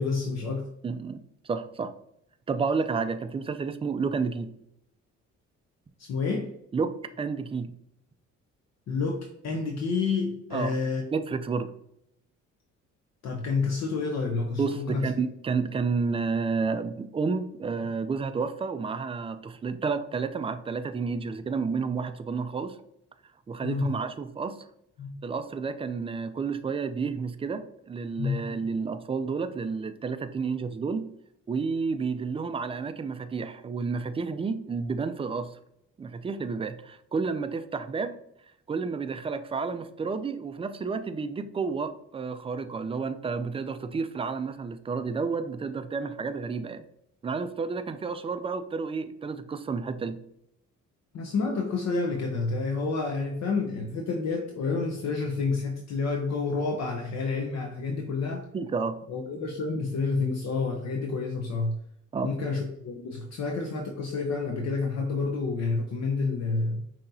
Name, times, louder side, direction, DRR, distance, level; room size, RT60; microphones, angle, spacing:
voice 1, 0.0-0.7 6.0-6.5 8.9-11.0 13.2-15.1 23.6-23.9 25.0-25.1 28.2-28.4 51.1-58.4 59.1-61.8 62.2-66.8, left 4 dB, 60° left, 2 dB, 0.7 m, -29 dB
voice 2, 0.8-1.9 2.5-4.5 6.7-7.7 10.5-10.8 11.1-11.7 14.6-22.8 23.5-24.6 25.2-31.1 31.5-35.6 36.0-38.2 38.7-46.8 47.2-50.2 58.5-59.0 62.1-62.4, right 5 dB, 20° right, 9 dB, 0.3 m, -31 dB
5.8 x 2.9 x 2.6 m, 0.75 s
cardioid pair, 90°, 30 cm